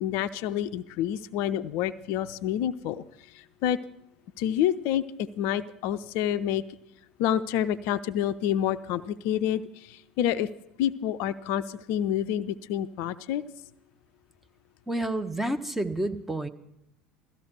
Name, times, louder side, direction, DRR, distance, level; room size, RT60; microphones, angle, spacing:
voice 1, 0.0-3.0 3.3-3.8 4.4-6.6 7.2-10.5 10.8-13.4, left 10 dB, 55° left, 12 dB, 0.5 m, -28 dB
voice 2, 14.9-16.5, right 1 dB, 5° right, 8 dB, 1.0 m, -29 dB
16.5 x 14.0 x 6.1 m, 0.84 s
figure-of-eight pair, 70°, 5 cm